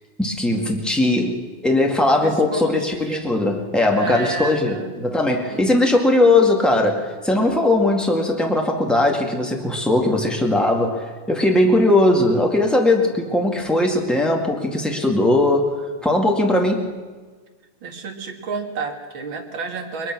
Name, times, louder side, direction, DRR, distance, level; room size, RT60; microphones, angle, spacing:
voice 1, 0.2-1.4 1.6-16.9, left 2 dB, ahead, 1 dB, 1.2 m, -19 dB
voice 2, 2.2-3.2 3.9-5.0 5.5-5.8 17.8-20.1, right 4 dB, 45° right, 3 dB, 2.3 m, -30 dB
22.0 x 21.0 x 6.2 m, 1.4 s
omnidirectional pair, 3.7 m